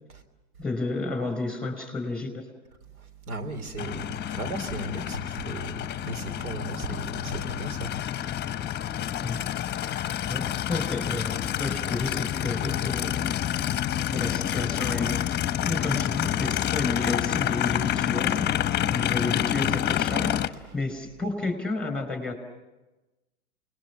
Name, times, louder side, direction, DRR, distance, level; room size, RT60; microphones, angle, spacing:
voice 1, 0.6-2.4 9.2-9.5 9.7-10.0 10.3-13.7 14.1-15.4 15.6-18.5 18.9-20.4 20.7-22.3, left 3 dB, ahead, 8 dB, 5.2 m, -31 dB
voice 2, 3.0-7.9, right 2 dB, 85° right, 8 dB, 3.4 m, -36 dB
Aircraft, 3.8-20.5, left 11 dB, 25° left, 1.1 m, -28 dB
28.5 x 21.0 x 7.1 m, 1.1 s
hypercardioid pair, 105°, 43 cm